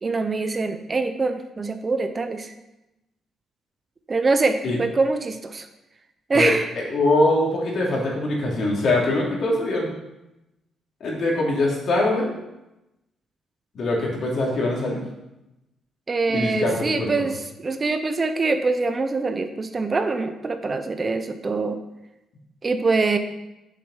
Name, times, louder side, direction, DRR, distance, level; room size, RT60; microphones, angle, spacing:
voice 1, 0.0-2.5 4.1-5.7 6.3-6.7 16.1-21.8 22.6-23.2, right 3 dB, 30° right, 8 dB, 0.8 m, -24 dB
voice 2, 6.3-9.9 11.0-12.3 13.7-15.0 16.3-17.1, left 2 dB, 60° left, -3 dB, 3.3 m, -23 dB
7.4 x 7.1 x 5.6 m, 0.93 s
cardioid pair, 90°, 0 cm